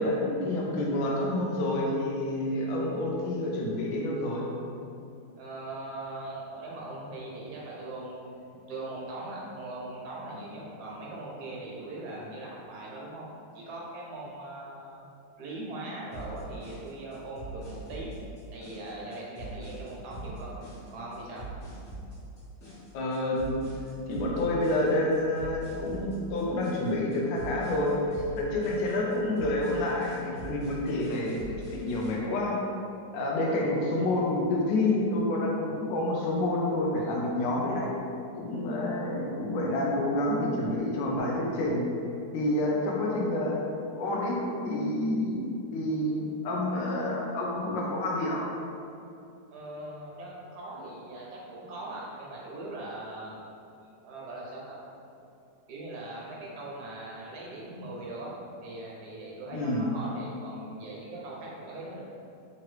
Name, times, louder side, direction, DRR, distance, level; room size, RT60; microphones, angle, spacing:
voice 1, 0.0-4.5 22.9-23.6 24.1-31.4 31.7-32.6 33.1-37.9 38.3-41.8 42.3-43.6 44.0-44.4 44.6-45.4 45.7-48.5 59.5-59.9, left 1 dB, 80° left, -3 dB, 1.3 m, -28 dB
voice 2, 5.4-15.1 15.4-18.2 18.5-20.6 20.9-21.4 24.1-24.2 49.5-53.4 54.0-54.8 55.1-55.2 55.7-58.4 58.6-62.0, right 2 dB, 65° right, -4 dB, 1.2 m, -40 dB
sound 1, 16.1-32.1, right 2 dB, 50° left, 1.7 m, -43 dB
3.7 x 3.0 x 3.1 m, 2.6 s
omnidirectional pair, 2.0 m